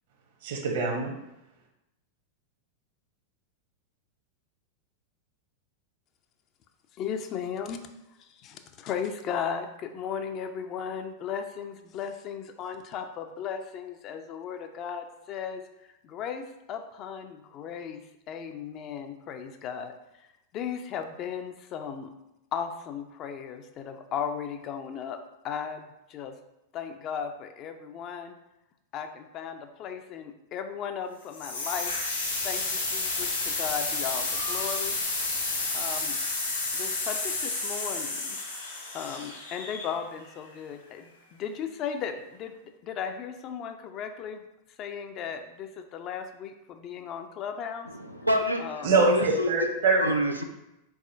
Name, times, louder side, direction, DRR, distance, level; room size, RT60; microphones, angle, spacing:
voice 1, 0.4-1.1 48.8-50.1, right 3 dB, 55° right, 2 dB, 0.9 m, -24 dB
voice 2, 7.0-7.8 8.2-15.6 16.0-18.0 18.3-20.3 20.5-22.1 22.5-25.2 25.4-26.3 26.7-28.3 28.9-31.9 32.4-35.0 35.7-36.2 36.7-38.4 38.9-44.4 44.8-47.9 48.6-48.9, left 7 dB, 35° left, 7 dB, 0.4 m, -36 dB
sound 1, 31.3-40.2, left 3 dB, 70° left, 1.4 m, -31 dB
voice 3, 47.8-49.5 50.0-50.4, equal, 90° right, 4 dB, 0.4 m, -28 dB
4.7 x 4.1 x 2.6 m, 0.91 s
figure-of-eight pair, 90°, 0 cm